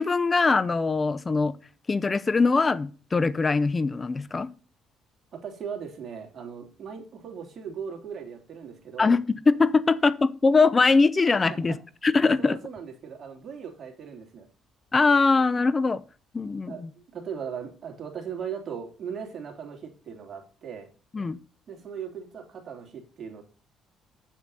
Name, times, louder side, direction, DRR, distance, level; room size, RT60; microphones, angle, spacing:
voice 1, 0.0-1.5 1.9-4.5 9.0-9.2 9.5-11.8 12.0-12.6 14.9-16.0 16.3-16.8 21.1-21.4, left 4 dB, 30° left, 0.6 m, -22 dB
voice 2, 5.3-9.2 11.5-11.8 12.4-14.5 16.7-20.9 21.7-23.4, right 7 dB, 50° right, 2.9 m, -38 dB
7.8 x 7.3 x 4.1 m
supercardioid pair, 70°, 0 cm